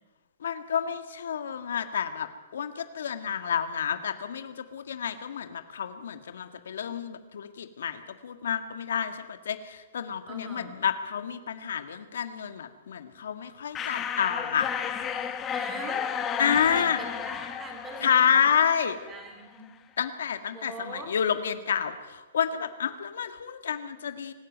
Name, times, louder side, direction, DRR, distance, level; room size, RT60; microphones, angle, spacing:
voice 1, 0.4-2.3 2.5-14.7 16.4-17.0 18.0-19.0 20.0-24.3, left 8 dB, 80° left, 9 dB, 1.7 m, -29 dB
voice 2, 10.2-10.9 15.5-16.1 16.7-18.6 19.1-19.7 20.5-21.1, right 2 dB, 15° right, 5 dB, 3.5 m, -42 dB
sound 1, 13.8-19.3, left 8 dB, 20° left, 1.2 m, -33 dB
24.5 x 13.0 x 9.3 m, 1.2 s
hypercardioid pair, 160°, 0 cm